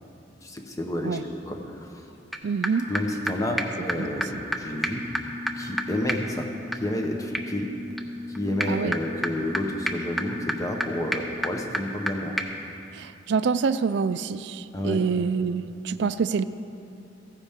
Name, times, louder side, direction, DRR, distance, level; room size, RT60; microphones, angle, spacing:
voice 1, 0.4-2.0 2.9-5.1 5.6-7.7 8.3-12.4 14.7-15.0, left 1 dB, 15° left, 2 dB, 1.0 m, -30 dB
sound 1, 2.3-2.4 2.6-2.7 2.9-3.0 3.3-3.4 3.6-3.7 3.9-4.0 4.2-4.3 4.5-4.6 4.8-12.1 12.4-12.5, equal, ahead, 0.6 m, -31 dB
voice 2, 2.4-2.9 8.7-8.9 12.9-16.4, right 5 dB, 60° right, 14 dB, 0.3 m, -26 dB
15.0 x 9.9 x 3.7 m, 2.7 s
head